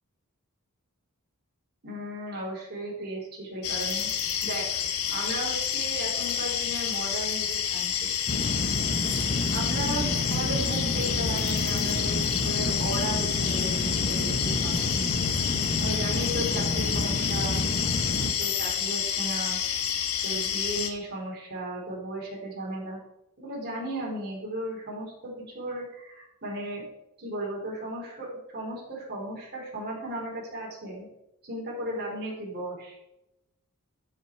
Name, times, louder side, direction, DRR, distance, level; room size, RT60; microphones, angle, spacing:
voice 1, 1.8-4.8 5.1-7.9 9.5-15.0 15.6-17.6 18.4-19.6 20.2-23.0 23.4-26.8 27.2-31.1 31.4-33.0, right 1 dB, 50° right, -3 dB, 3.6 m, -35 dB
sound 1, 3.6-20.9, left 8 dB, 90° left, 1.2 m, -29 dB
sound 2, 8.3-18.3, left 1 dB, 45° left, 0.8 m, -30 dB
12.5 x 5.9 x 4.5 m, 0.87 s
head